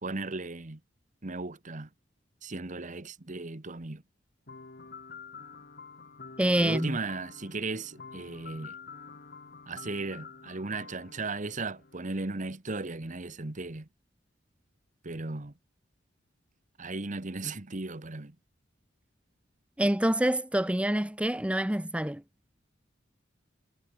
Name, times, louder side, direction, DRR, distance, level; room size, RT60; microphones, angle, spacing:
voice 1, 0.0-0.8 1.2-1.9 2.4-4.0 6.6-8.7 9.7-13.9 15.0-15.5 16.8-18.3, right 3 dB, 40° right, 1.3 m, -36 dB
sound 1, 4.5-12.3, left 5 dB, 55° left, 2.1 m, -48 dB
voice 2, 6.4-7.0 19.8-22.2, right 1 dB, 5° right, 0.8 m, -26 dB
head